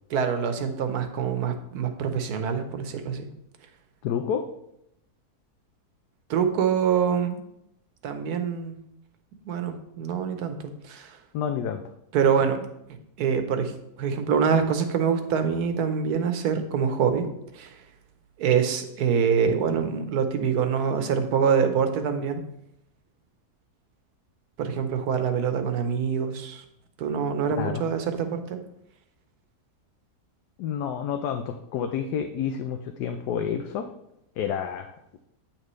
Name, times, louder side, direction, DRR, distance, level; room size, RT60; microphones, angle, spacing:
voice 1, 0.1-3.3 6.3-7.4 8.0-8.8 9.5-11.2 12.1-12.6 13.2-13.7 14.0-17.3 17.5-17.7 18.4-22.4 24.6-26.6 27.0-28.6, right 7 dB, 75° right, 7 dB, 1.3 m, -25 dB
voice 2, 4.0-4.4 11.3-11.8 27.6-27.8 30.6-33.9 34.4-35.0, left 8 dB, 90° left, 6 dB, 1.2 m, -29 dB
8.8 x 6.0 x 3.2 m, 0.81 s
omnidirectional pair, 1.7 m